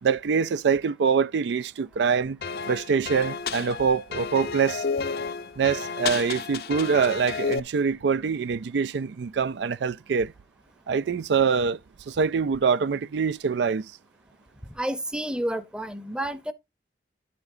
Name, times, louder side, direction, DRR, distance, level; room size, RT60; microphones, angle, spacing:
voice 1, 0.0-2.4 2.7-4.8 5.6-10.3 10.9-11.8 12.1-13.9, right 6 dB, 85° right, 0.4 m, -24 dB
sound 1, 2.4-7.6, left 5 dB, 60° left, 0.6 m, -31 dB
voice 2, 14.8-16.5, right 1 dB, 5° right, 0.7 m, -30 dB
11.0 x 8.4 x 2.6 m
head